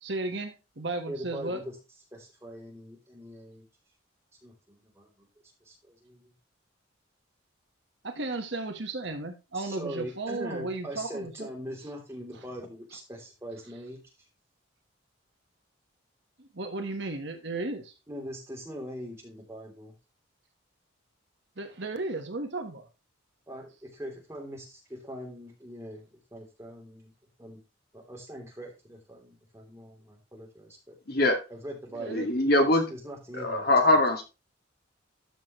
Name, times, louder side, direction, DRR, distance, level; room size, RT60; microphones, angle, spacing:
voice 1, 0.0-1.6 8.0-11.5 16.4-17.9 21.6-22.9 31.9-32.3, right 2 dB, 60° right, 6 dB, 1.3 m, -34 dB
voice 2, 1.1-1.8 2.1-3.6 4.4-5.3 5.6-6.3 9.5-14.0 18.1-19.9 23.5-27.1 27.4-27.6 27.9-31.0 31.5-32.4 32.9-33.7, equal, 15° right, -1 dB, 3.1 m, -42 dB
voice 3, 31.1-31.4 32.1-32.8 33.3-34.2, left 1 dB, 50° left, 3 dB, 2.0 m, -22 dB
13.0 x 6.1 x 3.1 m, 0.28 s
head